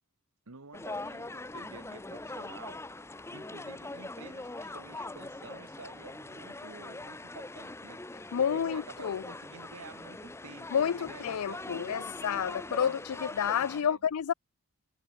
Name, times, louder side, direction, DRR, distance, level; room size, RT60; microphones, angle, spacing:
voice 1, 0.5-2.9 3.3-8.0 8.4-13.0 13.8-14.0, right 4 dB, 75° right, 1.7 m, -50 dB
sound 1, 0.7-13.8, left 2 dB, 10° left, 0.8 m, -42 dB
voice 2, 8.3-9.2 10.7-14.3, left 8 dB, 80° left, 0.4 m, -30 dB
head